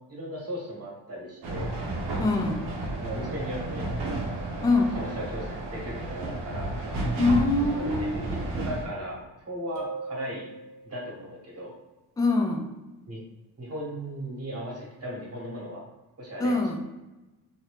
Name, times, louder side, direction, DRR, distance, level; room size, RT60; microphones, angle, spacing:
voice 1, 0.1-1.7 3.0-3.9 4.2-6.7 7.8-10.5 10.8-11.7 13.1-13.2 13.6-15.8 16.2-16.8, equal, 35° right, -2 dB, 1.3 m, -37 dB
sound 1, 1.4-8.8, right 2 dB, 85° right, 0.9 m, -32 dB
voice 2, 2.2-2.7 4.6-5.0 7.2-8.2 12.2-12.7 16.4-16.8, left 3 dB, 10° left, 2 dB, 0.4 m, -24 dB
sound 2, 9.8-11.2, right 4 dB, 60° right, 1.1 m, -39 dB
2.7 x 2.6 x 3.4 m, 1.1 s
cardioid pair, 90°, 42 cm